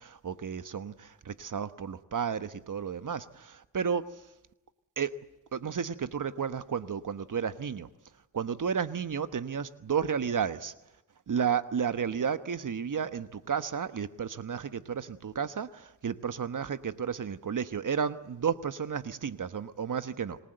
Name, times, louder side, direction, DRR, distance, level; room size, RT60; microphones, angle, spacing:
voice 1, 0.0-4.1 5.0-5.2 5.5-7.9 8.3-10.7 11.3-20.4, right 7 dB, 50° right, 12 dB, 1.3 m, -32 dB
26.5 x 19.5 x 8.0 m, 0.97 s
supercardioid pair, 45°, 41 cm